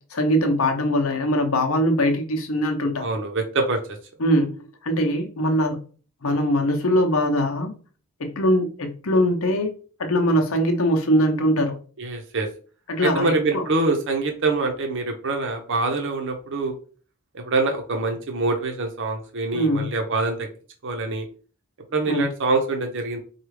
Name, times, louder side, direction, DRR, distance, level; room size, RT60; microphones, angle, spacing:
voice 1, 0.1-3.0 4.2-5.8 6.2-7.7 8.2-9.7 10.0-11.8 12.9-13.6 19.5-19.9 22.1-22.2, equal, 75° left, 0.8 m, -22 dB
voice 2, 3.0-3.8 12.0-12.5 13.0-16.8 17.3-20.5 20.8-21.3 21.9-23.2, right 3 dB, 60° right, 0.7 m, -25 dB
4.6 x 2.3 x 3.2 m
head